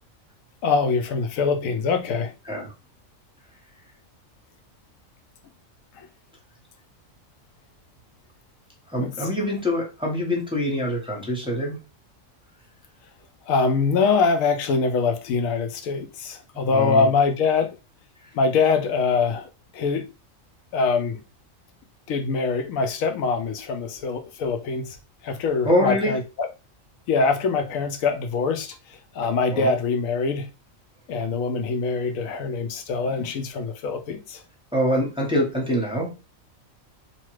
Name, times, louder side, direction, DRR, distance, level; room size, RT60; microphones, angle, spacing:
voice 1, 0.6-2.3 5.9-6.1 9.0-9.1 13.5-17.8 18.3-20.1 20.7-21.2 22.1-25.0 25.2-26.5 27.1-30.5 31.1-34.4, left 4 dB, 85° left, 1.0 m, -24 dB
voice 2, 8.9-11.8 16.5-17.1 25.6-26.1 29.5-29.7 34.7-36.1, equal, 5° right, 0.6 m, -24 dB
3.0 x 2.3 x 3.0 m
omnidirectional pair, 1.4 m